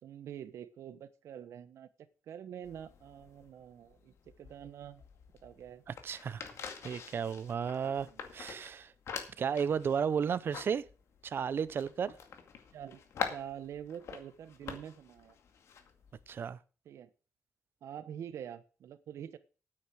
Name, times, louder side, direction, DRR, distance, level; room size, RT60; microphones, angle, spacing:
voice 1, 0.0-5.0 5.4-5.8 8.1-8.3 12.7-15.4 16.8-17.1 17.8-19.4, right 9 dB, 75° right, 1.1 m, -46 dB
sound 1, 2.6-16.4, left 6 dB, 70° left, 2.1 m, -46 dB
voice 2, 5.9-6.5 6.8-8.1 8.3-8.9 9.4-10.9 11.2-12.1 16.3-16.6, right 7 dB, 50° right, 0.8 m, -33 dB
9.5 x 8.9 x 6.4 m
cardioid pair, 125°, 5 cm